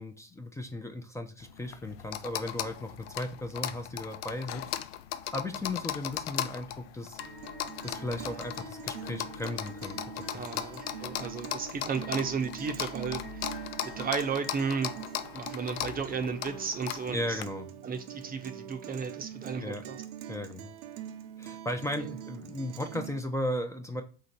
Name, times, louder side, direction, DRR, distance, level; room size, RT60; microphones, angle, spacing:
voice 1, 0.0-4.7 5.3-7.2 7.8-10.0 10.3-10.7 17.1-17.7 19.6-19.8 20.3-20.7 21.4-24.0, left 1 dB, 10° left, 0.7 m, -36 dB
sound 1, 1.4-17.4, left 11 dB, 80° left, 0.5 m, -38 dB
sound 2, 7.2-17.2, left 4 dB, 45° left, 1.4 m, -50 dB
Guitar, 7.2-23.2, right 10 dB, 75° right, 0.6 m, -44 dB
voice 2, 10.3-13.6 13.8-14.9 15.3-17.4 17.8-20.0 22.0-22.1, right 5 dB, 30° right, 0.7 m, -34 dB
3.8 x 3.2 x 4.2 m
hypercardioid pair, 75°, 29 cm